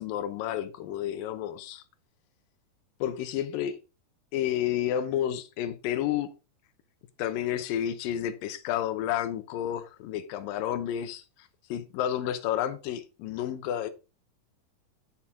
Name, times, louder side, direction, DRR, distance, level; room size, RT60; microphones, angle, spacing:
voice 1, 0.0-1.8 3.0-3.8 4.3-6.3 7.2-11.2 11.7-13.9, left 11 dB, 75° left, 2.3 m, -30 dB
8.7 x 7.0 x 3.6 m
omnidirectional pair, 4.5 m